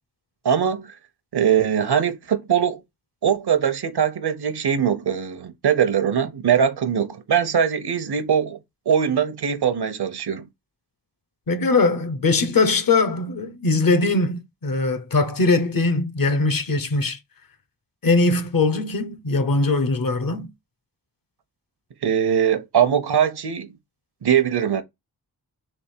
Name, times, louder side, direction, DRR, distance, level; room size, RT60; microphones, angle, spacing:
voice 1, 0.4-1.0 1.3-2.8 3.2-8.6 8.9-10.5 22.0-23.7 24.2-24.8, right 8 dB, 75° right, 0.7 m, -21 dB
voice 2, 11.5-17.2 18.0-20.5, left 3 dB, 60° left, 0.8 m, -21 dB
3.4 x 3.1 x 4.3 m
wide cardioid pair, 75°, 39 cm